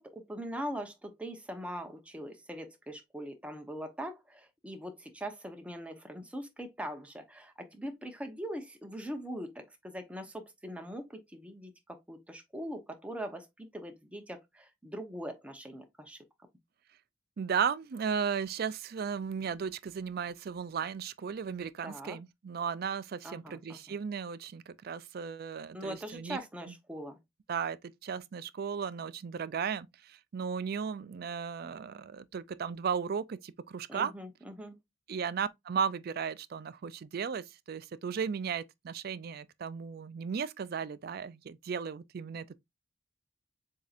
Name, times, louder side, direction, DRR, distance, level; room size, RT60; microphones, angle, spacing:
voice 1, 0.0-16.2 21.8-22.2 23.2-24.0 25.7-27.2 33.9-34.8, equal, 5° right, 0.8 m, -42 dB
voice 2, 17.4-26.4 26.7-26.8 27.5-27.8 28.0-34.1 35.1-42.6, right 6 dB, 55° right, 0.4 m, -35 dB
7.2 x 2.7 x 2.4 m
head